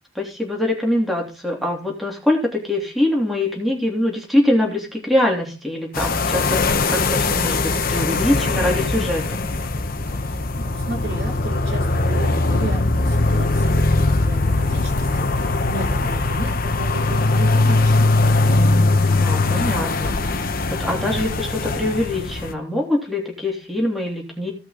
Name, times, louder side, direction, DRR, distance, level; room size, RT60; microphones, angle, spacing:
voice 1, 0.1-9.4 19.0-20.1 20.7-24.5, left 1 dB, ahead, -1 dB, 3.0 m, -23 dB
sound 1, 5.9-22.5, left 2 dB, 50° left, 1.0 m, -20 dB
voice 2, 10.1-18.2, right 2 dB, 60° right, 0 dB, 3.5 m, -34 dB
17.0 x 5.8 x 3.8 m, 0.33 s
head